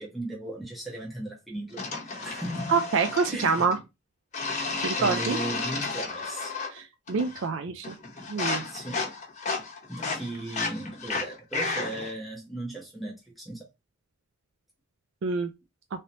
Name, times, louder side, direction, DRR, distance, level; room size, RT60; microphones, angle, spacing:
voice 1, 0.0-2.8 3.3-3.6 4.7-6.5 8.7-9.1 9.9-13.7, right 1 dB, ahead, 0.9 m, -37 dB
sound 1, 1.8-3.8 4.3-6.8 7.1-7.5 7.8-12.1, left 4 dB, 35° left, 0.9 m, -33 dB
voice 2, 2.7-3.8 4.8-5.4 6.7-8.0 8.3-8.6 15.2-15.5, right 4 dB, 60° right, 0.4 m, -26 dB
3.2 x 2.8 x 2.8 m
head